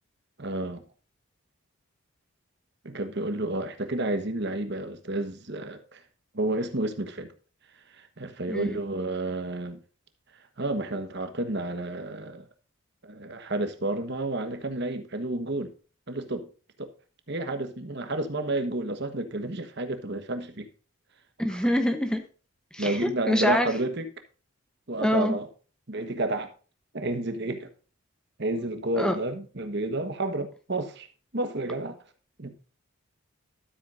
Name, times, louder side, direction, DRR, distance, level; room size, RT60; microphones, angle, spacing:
voice 1, 0.4-0.8 2.8-6.0 6.3-7.3 7.9-9.8 10.6-12.5 13.0-15.7 16.1-16.5 16.8-16.9 17.3-20.7 21.5-21.7 22.8-24.0 24.9-25.5 25.9-26.5 26.9-27.7 28.4-31.1 31.3-32.0 32.4-32.5, right 2 dB, 50° right, 1.3 m, -30 dB
voice 2, 21.4-22.2 22.7-23.7 25.0-25.4 29.0-29.2, equal, 5° left, 0.9 m, -25 dB
12.5 x 8.3 x 2.6 m
head